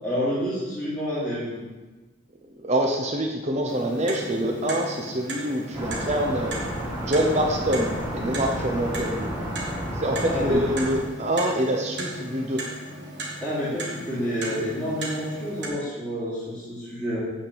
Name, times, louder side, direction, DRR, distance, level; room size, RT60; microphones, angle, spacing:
voice 1, 0.0-1.4 10.2-10.6 13.4-17.2, equal, 5° left, -13 dB, 2.8 m, -29 dB
voice 2, 2.6-6.5 7.0-9.3 9.9-12.6, right 1 dB, 35° right, 2 dB, 0.7 m, -25 dB
Clock, 3.7-15.7, right 1 dB, 55° right, 1.8 m, -37 dB
sound 1, 5.7-11.0, equal, 10° right, 1.5 m, -31 dB
8.7 x 4.4 x 7.3 m, 1.2 s
head